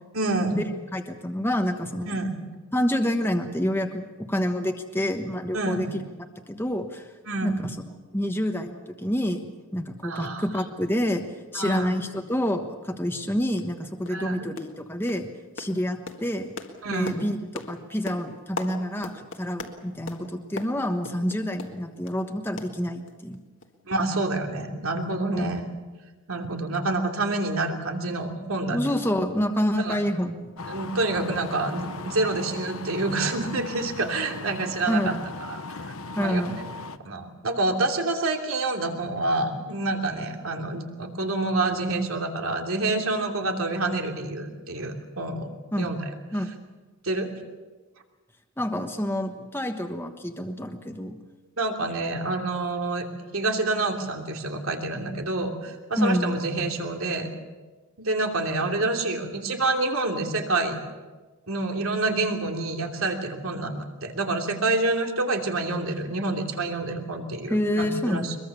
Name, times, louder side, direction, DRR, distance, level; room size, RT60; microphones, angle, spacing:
voice 1, 0.1-0.6 2.1-2.4 5.5-5.9 7.3-7.6 10.0-10.4 11.5-11.9 14.1-14.5 16.8-17.2 23.8-25.6 26.3-28.8 29.8-30.0 30.7-35.1 35.5-36.4 37.0-45.5 45.8-46.0 47.0-47.3 51.6-53.0 53.3-57.3 58.0-60.8 61.5-68.4, right 2 dB, 75° right, 3 dB, 2.9 m, -27 dB
voice 2, 0.9-2.2 2.7-4.0 4.3-6.0 6.5-7.1 7.4-7.8 8.1-9.5 9.7-11.2 11.5-15.3 15.6-16.5 16.9-23.4 25.3-25.5 28.7-30.7 34.9-35.2 36.2-36.6 45.7-45.9 46.3-46.5 48.6-51.2 56.0-56.4 67.5-68.3, equal, 10° left, 4 dB, 1.2 m, -27 dB
sound 1, 13.1-13.2 13.6-13.7 14.0-14.3 14.6-14.8 15.1-22.2 22.6-23.4 23.6-23.7 24.1-24.2, left 3 dB, 60° left, 1.9 m, -40 dB
sound 2, 30.6-37.0, left 3 dB, 75° left, 0.9 m, -38 dB
22.5 x 22.0 x 7.0 m, 1.3 s
head